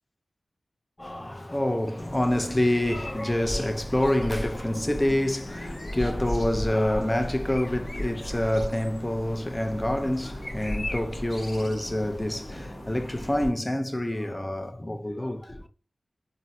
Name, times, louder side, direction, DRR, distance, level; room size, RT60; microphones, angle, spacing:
voice 1, 1.0-15.7, left 1 dB, 20° left, 0.4 m, -27 dB
sound 1, 2.0-13.5, left 1 dB, 50° left, 0.9 m, -36 dB
3.9 x 2.0 x 2.6 m
cardioid pair, 45°, 0 cm